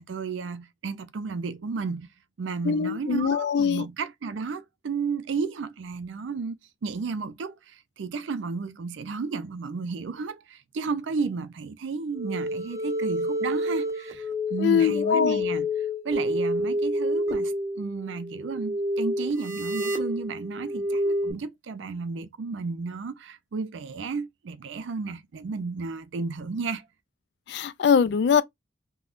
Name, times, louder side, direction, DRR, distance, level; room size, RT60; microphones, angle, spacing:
voice 1, 0.0-2.1 2.4-6.6 6.8-15.7 16.0-26.8, right 4 dB, 80° right, 0.4 m, -33 dB
voice 2, 2.7-3.8 14.6-15.4 27.5-28.4, left 6 dB, 60° left, 0.3 m, -22 dB
sound 1, 12.1-21.3, left 1 dB, 15° right, 0.8 m, -28 dB
3.4 x 2.2 x 2.4 m
head